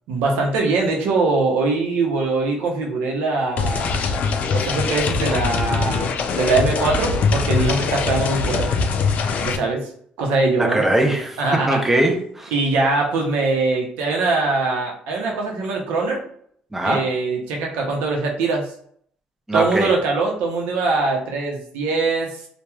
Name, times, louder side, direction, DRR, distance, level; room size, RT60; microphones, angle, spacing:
voice 1, 0.1-4.0 4.5-8.7 9.4-9.9 10.2-10.9 11.4-11.8 12.5-16.2 16.8-18.7 19.5-22.3, right 3 dB, 90° right, 0 dB, 0.7 m, -22 dB
sound 1, 3.6-9.6, left 5 dB, 60° left, 0.3 m, -22 dB
voice 2, 10.6-12.5 16.7-17.0 19.5-19.9, right 1 dB, 10° right, 2 dB, 0.5 m, -21 dB
3.0 x 2.2 x 2.3 m, 0.63 s
cardioid pair, 100°, 3 cm